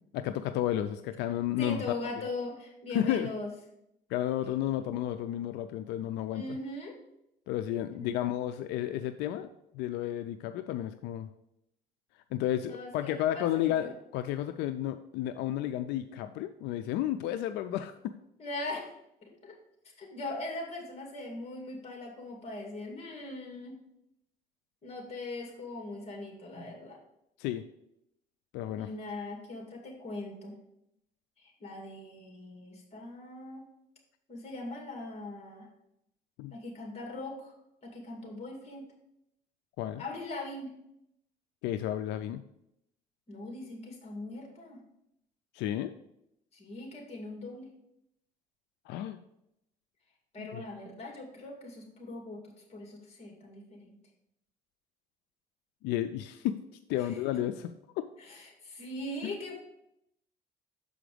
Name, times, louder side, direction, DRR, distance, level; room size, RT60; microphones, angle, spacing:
voice 1, 0.1-1.8 2.9-3.3 4.1-6.4 7.5-11.3 12.3-18.1 27.4-27.6 28.5-28.9 36.4-36.5 39.8-40.0 41.6-42.4 45.5-45.9 48.9-49.2 50.4-50.6 55.8-56.6 56.9-57.5 58.0-58.1 59.2-59.3, left 12 dB, 90° left, 9 dB, 0.4 m, -32 dB
voice 2, 1.6-3.5 6.3-7.0 7.9-8.1 12.7-13.9 18.4-18.9 19.2-19.5 20.0-23.8 24.8-27.0 28.8-30.5 31.4-33.6 34.3-35.7 36.5-37.5 37.8-38.9 40.0-40.7 43.3-44.8 46.5-47.7 50.3-54.0 57.0-57.1 58.2-59.6, left 2 dB, 40° left, 1 dB, 2.5 m, -40 dB
6.9 x 5.0 x 5.0 m, 0.80 s
cardioid pair, 110°, 17 cm